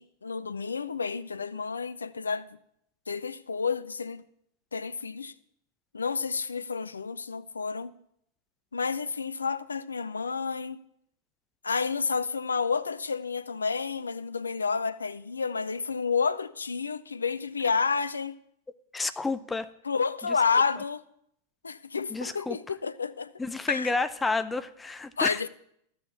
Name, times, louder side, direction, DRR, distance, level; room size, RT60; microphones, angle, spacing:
voice 1, 0.0-2.6 3.1-4.2 4.7-5.3 5.9-7.9 8.7-10.8 11.6-18.3 19.8-21.0 21.6-23.3 23.7-23.9 25.2-25.5, left 5 dB, 75° left, 0.5 m, -30 dB
voice 2, 18.9-19.7 22.1-22.6 23.4-25.4, left 3 dB, 10° left, 0.6 m, -30 dB
12.5 x 6.5 x 7.0 m
figure-of-eight pair, 90°, 0 cm